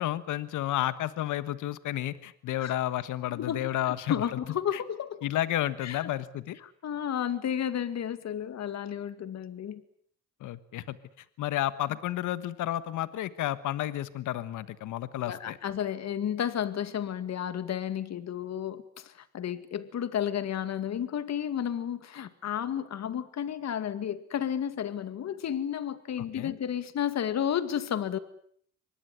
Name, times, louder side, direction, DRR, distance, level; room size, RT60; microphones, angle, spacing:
voice 1, 0.0-4.4 4.7-4.8 5.2-6.6 10.4-11.0 11.4-15.6 26.3-26.5, left 13 dB, 80° left, 15 dB, 1.4 m, -31 dB
voice 2, 3.3-5.2 5.8-6.1 6.6-9.8 15.3-28.2, left 9 dB, 60° left, 13 dB, 2.2 m, -32 dB
25.0 x 20.0 x 9.3 m, 0.63 s
cardioid pair, 90°, 30 cm